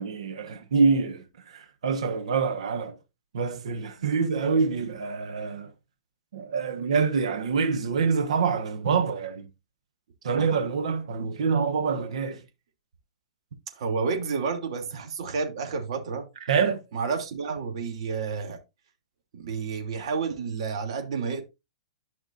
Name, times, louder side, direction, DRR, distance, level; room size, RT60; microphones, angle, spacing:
voice 1, 0.0-3.0 3.3-5.7 6.3-9.5 10.2-12.4 16.4-16.8, right 5 dB, 80° right, 1.3 m, -26 dB
voice 2, 13.7-16.3 16.9-18.6 19.3-21.4, right 5 dB, 60° right, 3.0 m, -30 dB
12.0 x 5.8 x 2.6 m
hypercardioid pair, 145°, 3 cm